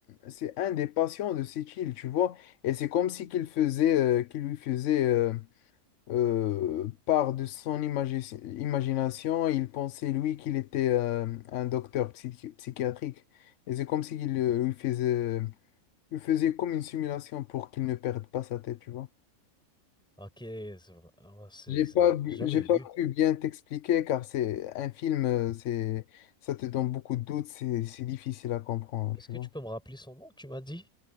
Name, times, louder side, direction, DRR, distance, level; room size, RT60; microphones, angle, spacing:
voice 1, 0.2-5.5 6.1-13.1 13.7-15.5 16.1-19.1 21.7-29.5, left 12 dB, 65° left, 0.9 m, -29 dB
voice 2, 20.2-22.8 29.2-30.9, equal, 5° left, 6.1 m, -43 dB
omnidirectional pair, 1.5 m